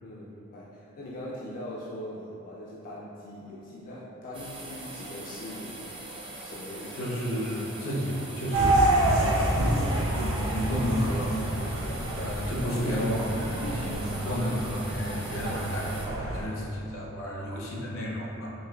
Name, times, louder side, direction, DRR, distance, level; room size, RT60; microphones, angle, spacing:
voice 1, 0.0-6.0 6.4-7.0, left 1 dB, 45° left, -6 dB, 0.3 m, -41 dB
sound 1, 4.3-16.1, right 2 dB, 25° right, 0.5 m, -42 dB
voice 2, 7.0-9.8 10.1-11.8 12.2-18.5, equal, 70° left, -4 dB, 0.7 m, -32 dB
sound 2, 8.5-16.4, right 1 dB, 80° right, 0.6 m, -28 dB
5.3 x 2.1 x 2.2 m, 2.7 s
head